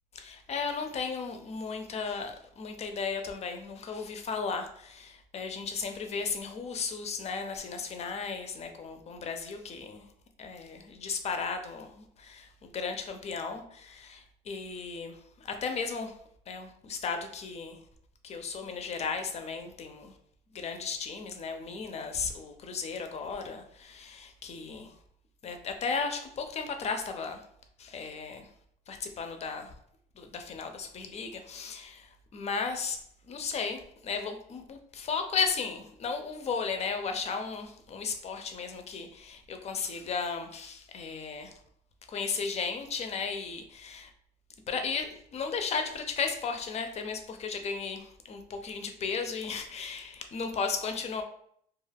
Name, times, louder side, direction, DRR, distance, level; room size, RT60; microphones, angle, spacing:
voice 1, 0.1-10.1 10.4-16.1 16.5-17.8 18.2-20.1 20.5-24.9 25.4-27.4 27.8-28.5 28.9-29.7 30.2-33.0 33.3-41.6 42.1-44.1 44.7-51.2, left 5 dB, 40° left, 6 dB, 0.5 m, -35 dB
2.4 x 2.3 x 3.2 m, 0.67 s
cardioid pair, 110°, 17 cm